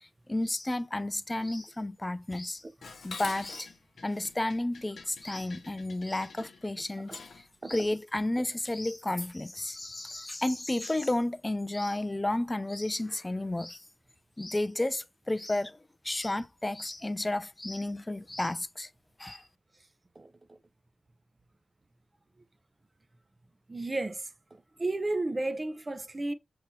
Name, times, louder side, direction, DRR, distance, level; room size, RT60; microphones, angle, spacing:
voice 1, 0.0-2.6 3.0-3.7 4.0-13.8 14.4-15.8 16.0-18.9 19.2-19.4, left 1 dB, 20° left, 0.4 m, -32 dB
Dishes pots and pans, 2.8-7.5, left 4 dB, 85° left, 0.6 m, -46 dB
voice 2, 20.2-20.6 23.7-26.3, right 2 dB, 35° right, 0.7 m, -34 dB
5.3 x 2.9 x 3.0 m
cardioid pair, 70°, 0 cm